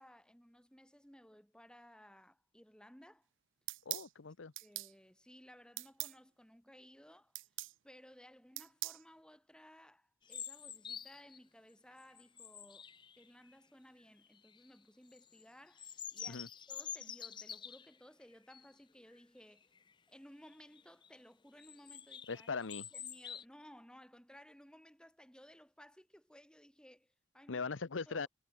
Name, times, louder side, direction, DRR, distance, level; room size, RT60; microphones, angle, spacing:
voice 1, 0.0-3.3 4.6-7.3 7.8-12.9 13.2-19.7 20.1-22.5 22.9-27.6 28.1-28.3, equal, 5° left, 6.6 m, -59 dB
sound 1, 3.7-4.1 4.6-4.9 5.8-6.2 7.3-7.7 8.6-9.0, right 20 dB, 80° right, 0.5 m, -41 dB
voice 2, 3.9-4.5 16.3-16.5 22.3-22.8 27.5-28.3, left 4 dB, 90° left, 0.8 m, -40 dB
sound 2, 10.3-11.4 11.9-13.5 14.2-14.7 15.1-18.0 18.5-18.7 19.1-19.2 19.6-19.9 20.5-21.1 21.6-23.4, left 8 dB, 25° left, 0.5 m, -48 dB
head